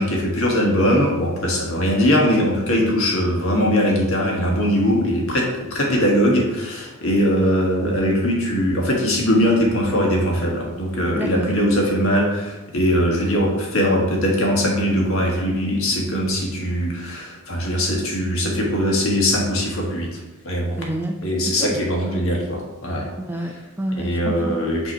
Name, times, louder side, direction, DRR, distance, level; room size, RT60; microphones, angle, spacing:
voice 1, 0.0-20.2 20.4-20.8 21.2-23.1 24.0-24.9, equal, 65° left, -1 dB, 1.4 m, -21 dB
voice 2, 11.1-11.5 20.8-21.2 21.5-21.8 23.2-24.6, right 1 dB, 10° right, 3 dB, 0.4 m, -28 dB
5.9 x 2.9 x 5.5 m, 1.1 s
head